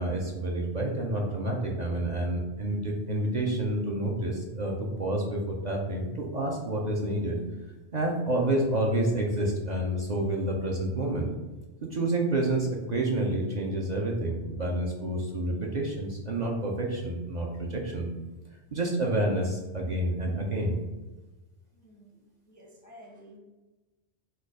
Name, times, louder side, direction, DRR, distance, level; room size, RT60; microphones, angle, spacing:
voice 1, 0.0-7.4 7.9-11.3 11.9-18.1 18.7-20.7, right 1 dB, 50° right, -1 dB, 0.6 m, -29 dB
voice 2, 21.7-23.4, equal, 20° left, -1 dB, 0.5 m, -52 dB
4.5 x 2.3 x 4.7 m, 1.1 s
omnidirectional pair, 1.2 m